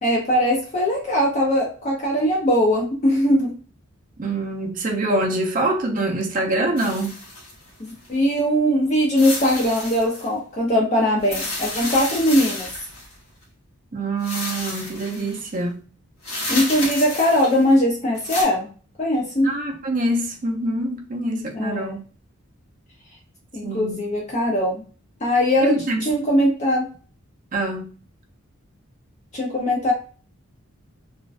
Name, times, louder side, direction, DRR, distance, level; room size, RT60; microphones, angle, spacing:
voice 1, 0.0-3.5 7.8-12.7 16.5-18.7 19.0-19.5 21.5-22.0 23.5-24.8 25.2-26.9 29.3-29.9, equal, 30° left, 0.5 m, -20 dB
voice 2, 4.2-7.1 13.9-15.8 19.4-22.0 23.6-24.0 25.6-26.0 27.5-27.9, right 2 dB, 35° right, 0.5 m, -25 dB
sound 1, 6.8-8.1 9.2-10.3 11.2-13.1 14.2-15.4 16.2-17.7 18.1-18.4, left 2 dB, 75° left, 1.0 m, -31 dB
2.5 x 2.1 x 2.3 m
head